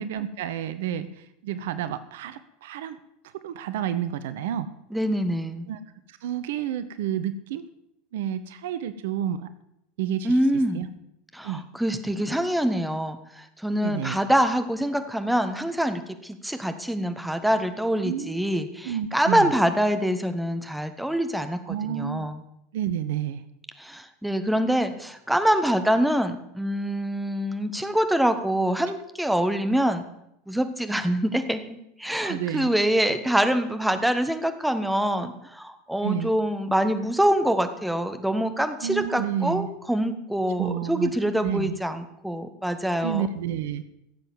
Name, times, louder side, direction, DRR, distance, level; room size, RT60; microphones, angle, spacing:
voice 1, 0.0-3.0 3.3-4.7 5.7-5.8 6.1-7.6 8.1-9.5 10.0-10.4 10.7-10.9 11.4-11.6 13.8-14.2 18.0-18.5 18.8-19.5 21.7-22.3 22.7-23.4 32.2-32.7 36.0-36.3 38.8-39.7 40.6-41.1 41.4-41.8 43.0-43.8, right 10 dB, 60° right, 13 dB, 0.8 m, -30 dB
voice 2, 4.9-5.7 10.2-10.8 11.3-22.4 23.8-30.0 30.5-43.3, equal, 5° right, 8 dB, 1.4 m, -25 dB
15.5 x 7.7 x 7.3 m, 0.80 s
figure-of-eight pair, 80°, 0 cm